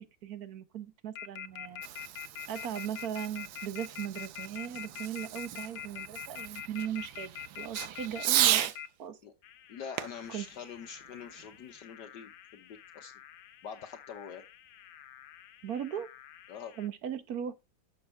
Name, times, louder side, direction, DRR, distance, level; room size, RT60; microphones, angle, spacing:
voice 1, 0.0-1.8 2.5-8.6 9.0-9.2 10.3-10.5 15.6-16.1 16.8-17.5, right 9 dB, 55° right, 1.3 m, -38 dB
sound 1, 1.2-8.9 9.4-16.9, left 9 dB, 85° left, 1.5 m, -45 dB
Fireworks, 1.5-8.8 10.0-11.6, right 12 dB, 85° right, 1.5 m, -35 dB
voice 2, 9.7-13.1 13.6-14.4 16.5-16.7, left 7 dB, 65° left, 1.5 m, -45 dB
11.0 x 7.0 x 3.3 m
omnidirectional pair, 2.1 m